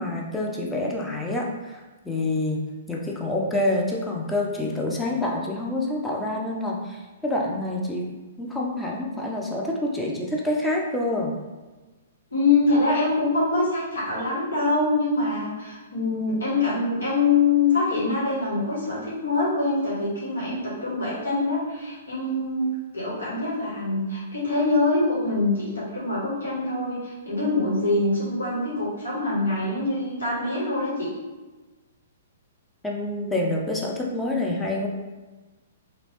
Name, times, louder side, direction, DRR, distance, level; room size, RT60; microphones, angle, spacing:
voice 1, 0.0-2.6 2.9-8.1 8.4-11.3 32.8-34.9, left 1 dB, 10° left, -2 dB, 0.5 m, -27 dB
voice 2, 12.3-22.6 22.9-31.1, left 3 dB, 85° left, -7 dB, 1.5 m, -24 dB
3.0 x 2.6 x 2.9 m, 1.2 s
hypercardioid pair, 125°, 0 cm